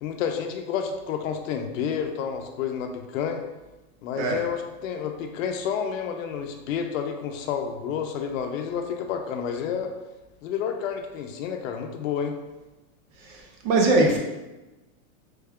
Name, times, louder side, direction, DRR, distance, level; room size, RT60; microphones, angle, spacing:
voice 1, 0.0-3.4 4.0-9.9 10.4-12.3, left 7 dB, 65° left, 5 dB, 0.6 m, -30 dB
voice 2, 13.6-14.2, right 2 dB, 45° right, 1 dB, 0.7 m, -20 dB
3.2 x 2.3 x 3.5 m, 1.1 s
supercardioid pair, 150°, 41 cm